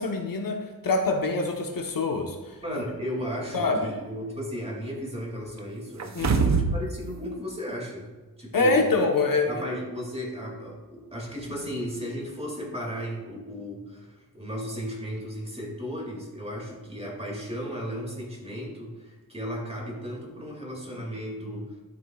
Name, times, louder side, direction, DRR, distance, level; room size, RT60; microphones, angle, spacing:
voice 1, 0.0-2.6 3.5-3.8 6.1-6.5 8.5-9.7, left 3 dB, 60° left, 2 dB, 1.1 m, -25 dB
voice 2, 2.6-8.1 8.4-8.9 9.5-21.8, equal, 15° right, -2 dB, 2.3 m, -35 dB
sound 1, 6.0-6.9 7.2-7.3, right 5 dB, 45° right, 0.7 m, -23 dB
12.5 x 7.2 x 2.4 m, 1.3 s
wide cardioid pair, 100°, 37 cm